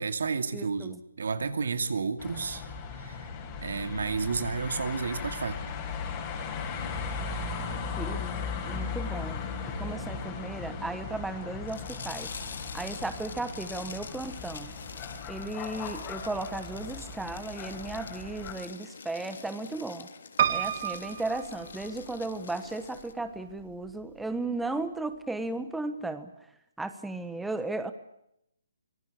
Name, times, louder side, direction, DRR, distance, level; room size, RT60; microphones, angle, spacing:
voice 1, 0.0-2.6 3.0-3.2 3.6-5.6, right 4 dB, 70° right, 9 dB, 2.6 m, -31 dB
voice 2, 0.5-1.0 8.0-8.4 8.7-9.4 9.8-12.3 12.7-14.7 15.3-20.1 20.5-26.3 26.8-27.9, right 2 dB, 5° right, 9 dB, 1.1 m, -35 dB
sound 1, 2.2-18.5, left 5 dB, 20° left, 4.8 m, -37 dB
sound 2, 11.7-23.1, left 5 dB, 65° left, 3.3 m, -45 dB
Piano, 20.4-22.4 23.0-23.7 24.0-24.1 24.3-24.4, right 9 dB, 40° right, 1.3 m, -30 dB
25.5 x 18.5 x 8.4 m, 0.78 s
hypercardioid pair, 160°, 0 cm